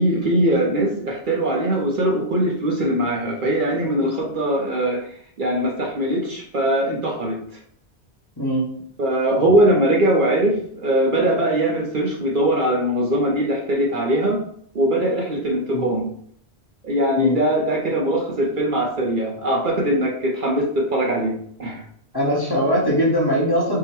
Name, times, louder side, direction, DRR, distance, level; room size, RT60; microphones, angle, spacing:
voice 1, 0.0-5.1 5.4-7.4 9.0-14.4 14.7-16.1 16.8-21.8, right 1 dB, 55° right, -1 dB, 0.8 m, -21 dB
voice 2, 8.4-8.7 15.7-15.8 17.2-17.4 22.1-23.8, equal, 25° left, -5 dB, 0.9 m, -20 dB
3.7 x 2.1 x 4.3 m, 0.63 s
omnidirectional pair, 1.1 m